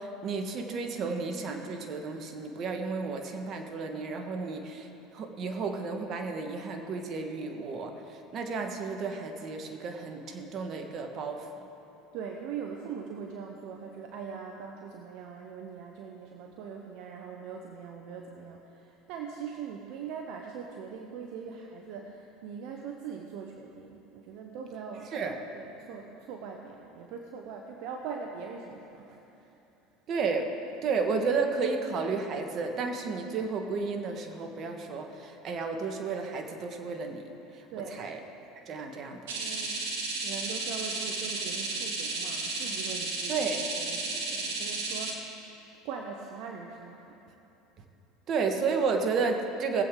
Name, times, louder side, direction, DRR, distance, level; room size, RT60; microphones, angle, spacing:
voice 1, 0.0-11.5 25.1-25.3 30.1-30.5 30.8-37.6 38.0-38.2 38.7-39.3 43.3-43.6 48.3-49.8, right 4 dB, 45° right, 4 dB, 1.5 m, -32 dB
voice 2, 12.1-25.1 25.5-29.6 37.7-38.1 39.3-45.4 45.8-47.3, right 6 dB, 65° right, 2 dB, 0.9 m, -41 dB
sound 1, 39.3-45.1, right 3 dB, 80° right, 1.7 m, -33 dB
20.0 x 8.0 x 3.8 m, 3.0 s
hypercardioid pair, 90°, 0 cm